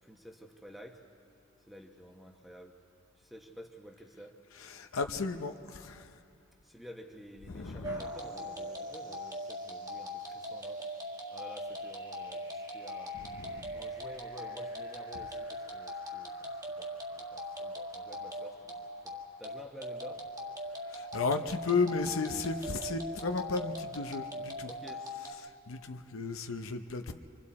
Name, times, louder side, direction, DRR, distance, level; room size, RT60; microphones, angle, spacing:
voice 1, 0.0-1.0 1.7-2.8 3.2-4.4 6.6-10.9 11.3-13.2 13.7-18.8 19.0-20.3 20.6-20.7 24.6-25.1, equal, ahead, 1 dB, 1.0 m, -51 dB
voice 2, 4.5-6.1 7.5-8.0 13.1-13.7 20.9-24.7 25.1-25.3 25.7-27.1, left 4 dB, 80° left, 6 dB, 0.7 m, -34 dB
sound 1, 7.8-25.3, equal, 20° right, 1.6 m, -40 dB
26.5 x 24.0 x 4.2 m, 2.6 s
head